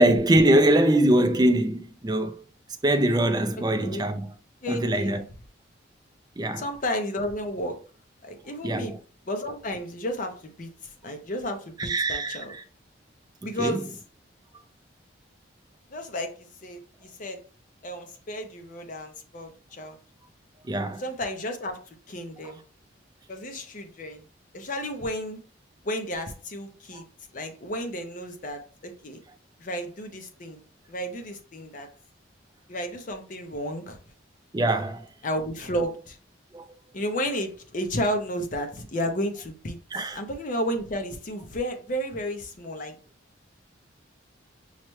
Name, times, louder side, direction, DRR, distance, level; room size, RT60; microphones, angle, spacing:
voice 1, 0.0-2.4 2.8-4.3 4.7-5.2 6.4-6.6 8.6-9.0 11.8-12.6 13.6-13.8 20.7-21.0 34.5-35.0 36.5-36.6 39.9-40.2, right 1 dB, 20° right, 0.4 m, -22 dB
voice 2, 4.6-5.3 6.6-7.8 8.2-9.0 9.3-12.5 13.4-14.0 15.9-17.4 17.8-20.0 21.0-22.6 23.3-24.2 24.5-25.4 25.8-27.1 27.3-29.2 29.6-30.6 30.9-31.9 32.7-34.0 35.2-36.2 36.9-39.8 40.1-43.0, equal, 40° left, 0.6 m, -32 dB
5.5 x 2.2 x 3.1 m
head